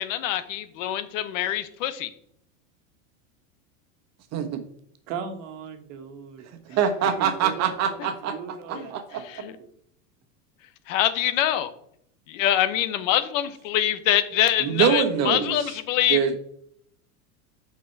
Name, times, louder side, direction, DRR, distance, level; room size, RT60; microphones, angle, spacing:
voice 1, 0.0-2.1 8.7-8.9 9.3-9.6 10.9-11.7 12.3-16.2, left 12 dB, 70° left, 12 dB, 0.9 m, -24 dB
voice 2, 4.3-4.6 6.8-8.3 8.7-9.4 14.6-15.8 16.1-16.4, right 7 dB, 40° right, 7 dB, 1.2 m, -24 dB
voice 3, 5.1-9.7, right 6 dB, 65° right, 7 dB, 1.5 m, -38 dB
6.0 x 6.0 x 4.6 m, 0.68 s
supercardioid pair, 125°, 40 cm